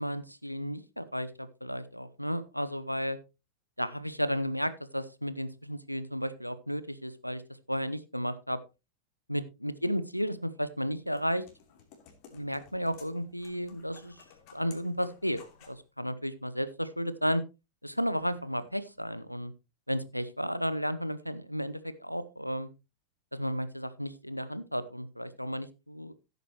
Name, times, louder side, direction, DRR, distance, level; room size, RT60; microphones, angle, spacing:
voice 1, 0.0-3.2 3.8-7.4 7.7-8.6 9.3-11.4 12.3-14.2 14.5-17.4 17.8-19.5 19.9-22.7 23.3-26.1, equal, 90° left, 15 dB, 0.8 m, -33 dB
sound 1, 10.7-15.8, left 7 dB, 45° left, 3.0 m, -56 dB
sound 2, 18.2-19.0, right 1 dB, 90° right, 3.1 m, -60 dB
15.0 x 8.2 x 3.0 m, 0.27 s
figure-of-eight pair, 90°, 0 cm